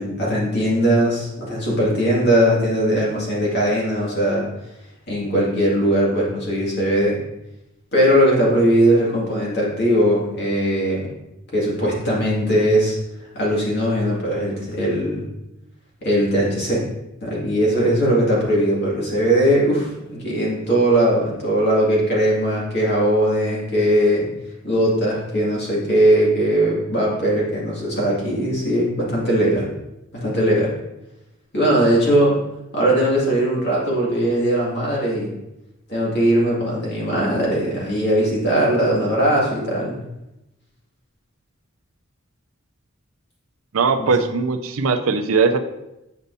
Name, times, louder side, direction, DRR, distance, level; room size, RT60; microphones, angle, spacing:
voice 1, 0.0-4.5 5.1-7.2 7.9-11.1 11.5-13.0 13.3-15.3 16.0-16.9 17.2-24.3 24.6-29.7 30.2-30.7 31.5-32.4 32.7-35.3 35.9-40.0 44.0-44.1, right 1 dB, 50° left, -4 dB, 2.2 m, -19 dB
voice 2, 43.7-45.6, right 4 dB, 80° right, 8 dB, 0.5 m, -19 dB
8.4 x 5.3 x 2.7 m, 0.92 s
head